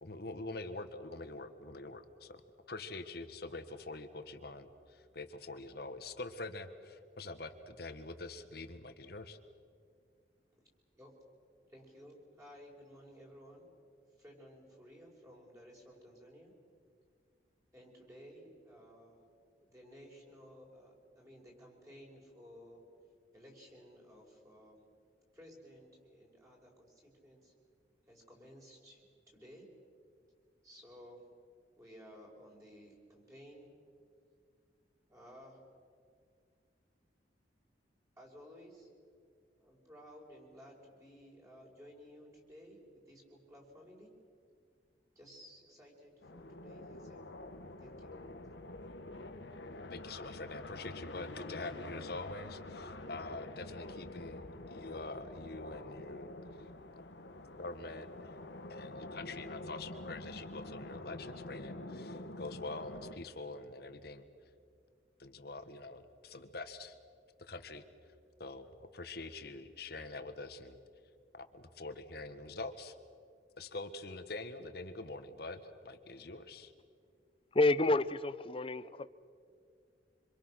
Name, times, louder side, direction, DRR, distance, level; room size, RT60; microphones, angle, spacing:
voice 1, 0.0-2.4 2.7-9.4 49.9-56.3 57.6-58.4 58.7-64.2 65.2-66.9 67.5-67.8 68.4-70.8 71.4-72.9 73.6-76.7, left 2 dB, 60° left, 1.5 m, -45 dB
voice 2, 11.7-13.7 14.2-16.5 17.7-19.2 19.6-22.8 23.3-24.8 25.3-27.5 28.1-29.1 29.3-29.7 30.6-31.3 31.8-33.7 35.1-35.6 38.2-38.9 39.5-44.1 45.1-47.2 47.8-48.1, equal, 15° right, 5.2 m, -56 dB
sound 1, 46.2-63.2, left 2 dB, 75° left, 1.4 m, -47 dB
voice 3, 77.5-79.1, left 2 dB, 30° left, 0.7 m, -29 dB
26.0 x 26.0 x 6.4 m
head